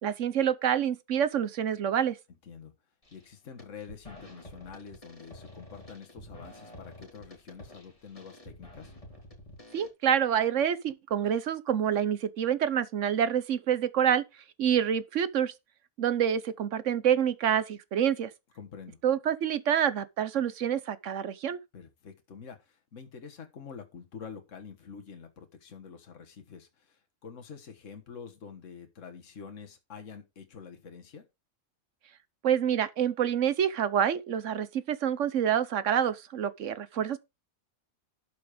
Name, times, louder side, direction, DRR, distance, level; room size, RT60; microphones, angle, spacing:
voice 1, 0.0-2.2 9.7-14.2 14.6-15.5 16.0-18.3 19.0-21.6 32.4-37.2, right 9 dB, 65° right, 1.1 m, -27 dB
voice 2, 2.4-2.7 3.1-8.9 18.6-19.0 21.7-31.3, left 6 dB, 60° left, 1.8 m, -47 dB
sound 1, 3.0-3.3 3.6-9.9, left 1 dB, 25° left, 2.9 m, -49 dB
11.5 x 5.2 x 5.1 m
omnidirectional pair, 1.5 m